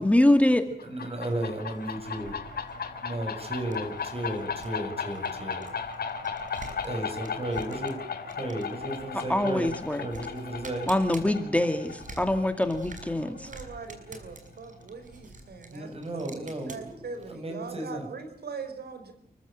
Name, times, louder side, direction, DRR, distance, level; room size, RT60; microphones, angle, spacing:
voice 1, 0.0-0.6 9.3-10.0 10.9-13.5, left 1 dB, 10° left, 7 dB, 2.2 m, -24 dB
sound 1, 0.8-14.2, left 6 dB, 75° left, 3.7 m, -37 dB
voice 2, 0.8-2.4 3.0-5.7 6.5-10.9 14.7-14.8 15.7-18.1, right 1 dB, 40° right, 5 dB, 7.9 m, -34 dB
sound 2, 1.3-17.3, right 2 dB, 55° right, 6.2 m, -48 dB
voice 3, 13.2-19.1, right 5 dB, 85° right, 8 dB, 5.0 m, -41 dB
30.0 x 15.5 x 9.1 m, 0.66 s
wide cardioid pair, 135°, 16 cm